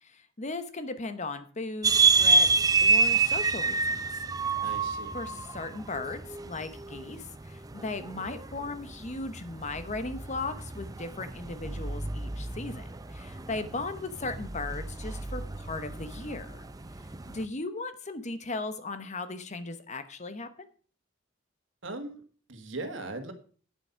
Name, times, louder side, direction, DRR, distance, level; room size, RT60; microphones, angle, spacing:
voice 1, 0.0-4.1 5.1-16.6 17.2-20.7, left 3 dB, 35° left, 11 dB, 1.0 m, -37 dB
sound 1, 1.8-17.5, right 4 dB, 20° right, 0.5 m, -29 dB
voice 2, 4.6-5.1 21.8-22.2 22.5-23.3, right 2 dB, 70° right, 7 dB, 1.8 m, -38 dB
9.3 x 7.9 x 5.7 m, 0.41 s
head